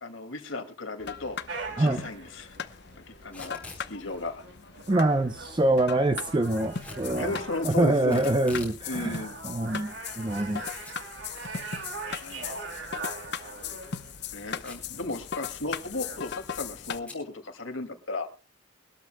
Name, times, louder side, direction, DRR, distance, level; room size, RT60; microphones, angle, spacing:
voice 1, 0.0-1.4 1.8-2.6 3.2-4.4 7.1-8.3 8.9-9.4 12.2-12.5 14.3-18.3, left 2 dB, 80° left, 7 dB, 2.3 m, -35 dB
sound 1, 1.0-17.0, left 7 dB, 55° left, 0.8 m, -39 dB
sound 2, 1.5-17.1, right 4 dB, 65° right, 2.3 m, -43 dB
voice 2, 1.8-2.1 4.9-7.3 7.6-10.6, right 1 dB, 25° right, 9 dB, 0.5 m, -25 dB
Packing tape duct tape / Tearing, 3.2-3.9 6.8-7.1 8.1-8.8 9.2-9.3 10.0-10.6 10.8-10.9 11.3-11.4 13.4-13.7 14.6-15.0 15.3-15.4 15.6-15.9 17.0-17.2, left 2 dB, 5° left, 3.6 m, -44 dB
23.5 x 12.5 x 2.2 m, 0.33 s
head